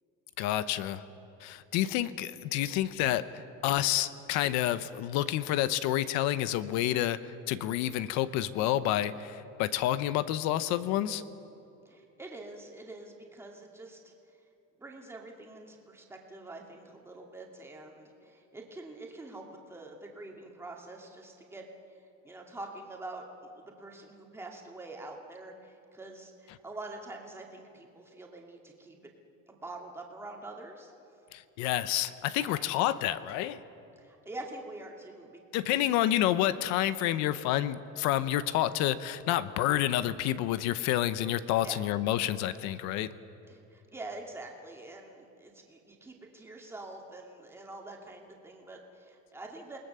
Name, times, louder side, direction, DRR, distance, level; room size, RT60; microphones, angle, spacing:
voice 1, 0.4-1.0 1.4-11.2 31.3-33.6 35.5-43.1, left 13 dB, 70° left, 14 dB, 0.9 m, -29 dB
voice 2, 11.8-14.1 14.8-21.6 22.2-29.1 29.5-30.9 32.4-32.7 34.0-35.8 41.6-41.8 43.5-49.8, right 2 dB, 10° right, 0 dB, 2.4 m, -45 dB
28.5 x 20.0 x 6.9 m, 2.9 s
cardioid pair, 165°, 29 cm